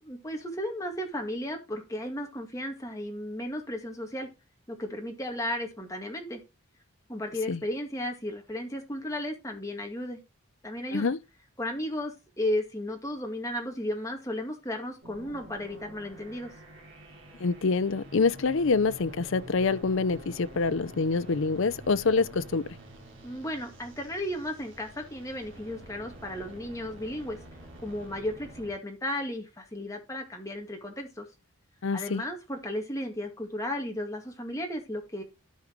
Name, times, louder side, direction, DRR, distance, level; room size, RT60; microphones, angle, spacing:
voice 1, 0.0-4.3 4.7-6.4 7.1-10.2 10.6-11.1 11.6-16.5 23.2-27.4 27.8-31.3 31.9-35.2, left 1 dB, 15° left, 2.1 m, -34 dB
sound 1, 15.0-28.7, right 1 dB, 55° right, 2.9 m, -48 dB
voice 2, 17.4-22.7 31.8-32.2, left 4 dB, 65° left, 0.5 m, -26 dB
13.0 x 5.1 x 3.1 m
head